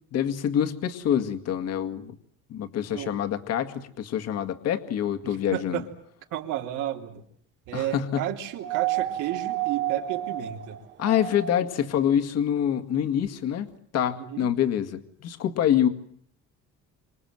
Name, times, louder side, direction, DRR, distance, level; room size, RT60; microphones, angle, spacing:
voice 1, 0.1-2.1 2.5-5.8 7.7-8.3 11.0-13.7 13.9-15.9, left 9 dB, 55° left, 8 dB, 2.0 m, -26 dB
voice 2, 5.2-5.9 6.3-7.2 7.7-10.8 14.2-14.5, right 12 dB, 80° right, 2 dB, 3.4 m, -32 dB
sound 1, 8.6-11.8 13.2-13.3, right 14 dB, 35° right, 1.3 m, -30 dB
29.0 x 26.0 x 7.8 m, 0.63 s
cardioid pair, 170°, 30 cm